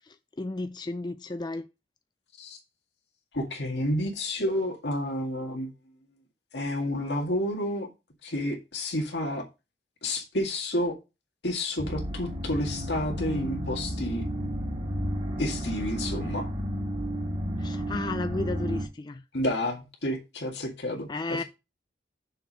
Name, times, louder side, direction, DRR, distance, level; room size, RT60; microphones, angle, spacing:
voice 1, 0.0-1.7 17.6-19.2 21.1-21.4, left 2 dB, 25° left, 0.4 m, -33 dB
voice 2, 3.3-5.7 6.5-7.9 8.2-9.5 10.0-11.0 11.4-14.3 15.4-16.5 19.3-21.4, left 1 dB, 80° left, 2.0 m, -30 dB
sound 1, 11.8-18.9, equal, 30° right, 2.0 m, -32 dB
6.5 x 4.7 x 5.2 m
head